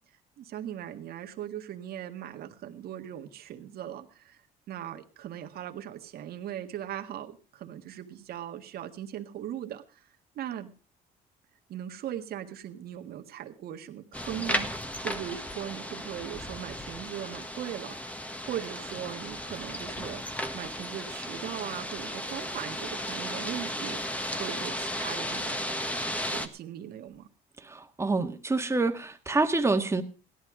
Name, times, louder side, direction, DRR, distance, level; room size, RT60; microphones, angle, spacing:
voice 1, 0.4-4.4 4.7-10.1 10.4-10.7 11.7-14.7 15.0-25.7 26.3-27.3, right 11 dB, 65° right, 5 dB, 1.8 m, -39 dB
sound 1, 14.1-26.5, equal, 10° left, 1.5 m, -35 dB
voice 2, 27.6-30.0, right 3 dB, 15° right, 6 dB, 1.7 m, -27 dB
17.0 x 11.5 x 5.0 m, 0.36 s
cardioid pair, 110°, 17 cm